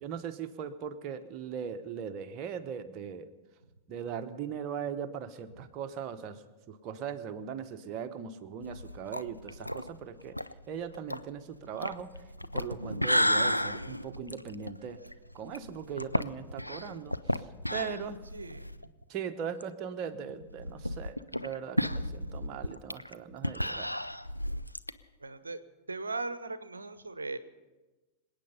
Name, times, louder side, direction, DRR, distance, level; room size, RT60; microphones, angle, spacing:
voice 1, 0.0-3.3 3.9-10.4 10.7-12.1 12.5-15.0 15.3-17.5 17.7-18.2 19.1-23.9, right 7 dB, 40° right, 7 dB, 1.1 m, -39 dB
sound 1, 8.6-18.9 19.2-19.3 19.6-19.7 20.4-24.9, equal, 90° left, 0.4 m, -33 dB
voice 2, 18.3-18.8 25.2-25.6 25.9-27.4, right 3 dB, 75° right, 14 dB, 0.8 m, -38 dB
27.0 x 9.0 x 5.5 m, 1.2 s
figure-of-eight pair, 90°, 0 cm